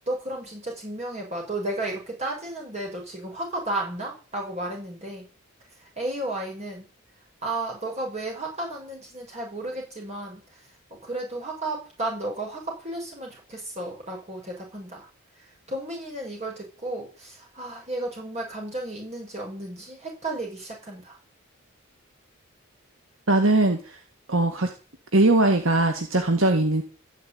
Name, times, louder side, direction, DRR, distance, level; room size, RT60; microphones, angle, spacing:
voice 1, 0.1-5.3 6.0-6.9 7.4-10.4 11.0-15.1 15.7-21.2, right 2 dB, 35° right, -1 dB, 6.7 m, -33 dB
voice 2, 23.3-24.0 24.3-24.7 25.1-26.8, right 2 dB, 70° right, 6 dB, 1.9 m, -20 dB
14.0 x 7.7 x 9.4 m, 0.35 s
head